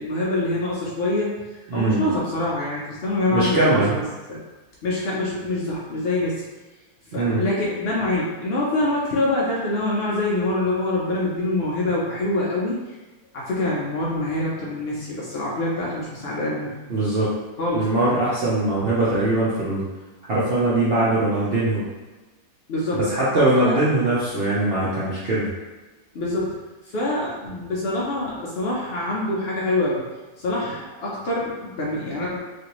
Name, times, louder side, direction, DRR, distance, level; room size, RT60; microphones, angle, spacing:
voice 1, 0.0-4.0 4.3-4.4 4.8-6.4 7.1-13.0 13.3-16.7 17.6-17.9 22.7-23.0 23.6-23.8 26.1-26.6 26.8-30.1 30.4-32.4, left 2 dB, 85° left, -5 dB, 0.5 m, -25 dB
voice 2, 1.7-2.0 3.3-4.0 7.1-7.4 16.9-17.3 17.7-19.9 20.3-21.9 22.9-25.5, right 2 dB, 60° right, -8 dB, 0.6 m, -21 dB
3.2 x 2.5 x 2.9 m, 1.2 s
omnidirectional pair, 1.7 m